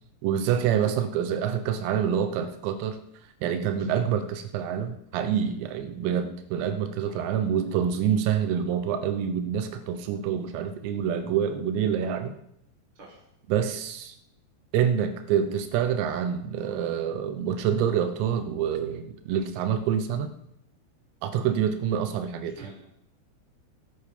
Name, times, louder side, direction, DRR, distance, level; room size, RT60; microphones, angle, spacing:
voice 1, 0.2-3.0 3.4-12.3 13.5-14.2 14.7-20.3 21.2-22.6, right 8 dB, 85° right, 10 dB, 3.7 m, -27 dB
voice 2, 3.7-3.9 7.1-7.2 13.0-13.2 22.6-22.8, right 3 dB, 25° right, -3 dB, 4.0 m, -48 dB
21.5 x 8.4 x 5.3 m, 0.77 s
omnidirectional pair, 5.9 m